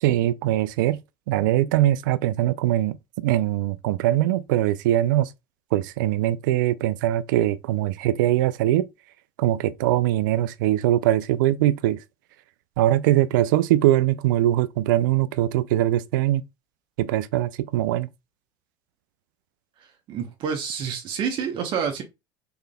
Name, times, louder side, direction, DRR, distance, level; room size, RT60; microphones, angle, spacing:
voice 1, 0.0-1.0 1.3-5.3 5.7-8.9 9.4-12.0 12.8-16.4 17.0-18.1, right 14 dB, 80° right, 0.4 m, -22 dB
voice 2, 19.8-22.0, right 7 dB, 55° right, 0.9 m, -28 dB
3.9 x 3.7 x 2.2 m
supercardioid pair, 85°, 10 cm